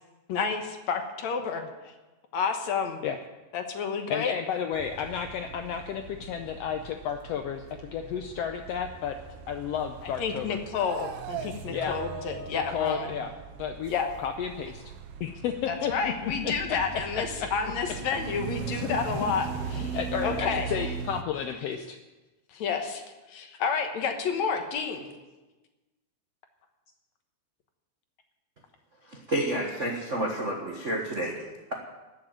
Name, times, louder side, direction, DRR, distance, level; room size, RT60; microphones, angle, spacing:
voice 1, 0.3-1.6 2.3-3.0 3.5-4.3 10.0-13.2 13.9-14.1 15.7-20.7 22.5-23.0 23.3-25.1, left 6 dB, 65° left, 5 dB, 2.4 m, -30 dB
voice 2, 4.1-9.2 9.5-10.6 11.7-12.0 12.5-13.3 13.6-13.9 14.2-14.9 15.2-16.5 16.9-17.5 18.8-19.3 19.7-22.0, left 8 dB, 85° left, 6 dB, 1.4 m, -32 dB
sound 1, 4.7-21.2, right 7 dB, 85° right, 1.3 m, -39 dB
voice 3, 29.0-31.7, right 1 dB, 50° right, -1 dB, 0.8 m, -30 dB
13.5 x 7.6 x 8.9 m, 1.2 s
omnidirectional pair, 3.7 m